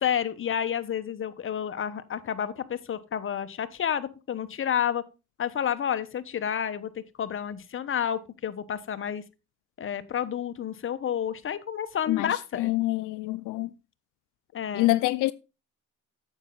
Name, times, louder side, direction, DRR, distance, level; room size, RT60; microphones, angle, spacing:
voice 1, 0.0-5.0 5.4-9.2 9.8-12.7 14.5-14.9, left 9 dB, 45° left, 0.9 m, -30 dB
voice 2, 12.1-13.7 14.7-15.3, left 18 dB, 90° left, 0.5 m, -26 dB
9.1 x 7.3 x 3.8 m
cardioid pair, 90°, 30 cm